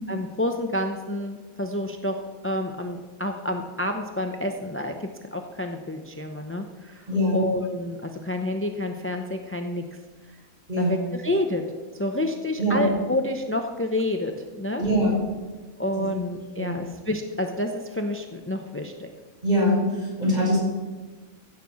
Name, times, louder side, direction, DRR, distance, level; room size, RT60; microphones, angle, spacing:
voice 1, 0.1-9.8 10.3-10.4 10.8-11.6 12.0-14.8 15.8-19.1, left 1 dB, 15° left, 5 dB, 0.4 m, -29 dB
voice 2, 7.1-7.4 10.7-11.0 12.6-12.8 14.8-15.1 16.0-16.1 16.6-16.8 19.4-20.6, equal, 25° right, -5 dB, 5.8 m, -23 dB
15.5 x 6.8 x 7.1 m, 1.3 s
omnidirectional pair, 1.6 m